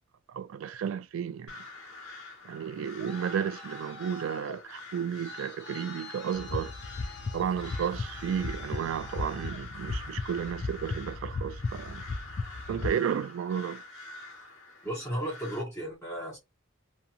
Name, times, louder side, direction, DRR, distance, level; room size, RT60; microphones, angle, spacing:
voice 1, 0.3-1.5 2.4-6.7 7.3-12.0 12.7-13.8, right 8 dB, 70° right, 0.3 m, -33 dB
Crow, 1.5-15.6, left 2 dB, 75° left, 1.0 m, -46 dB
Traffic noise roadway noise, 2.6-10.3, left 2 dB, 55° left, 0.8 m, -49 dB
sound 1, 6.3-12.9, left 3 dB, 30° left, 0.3 m, -36 dB
voice 2, 14.8-16.4, right 1 dB, 10° left, 1.1 m, -34 dB
2.8 x 2.5 x 2.3 m
head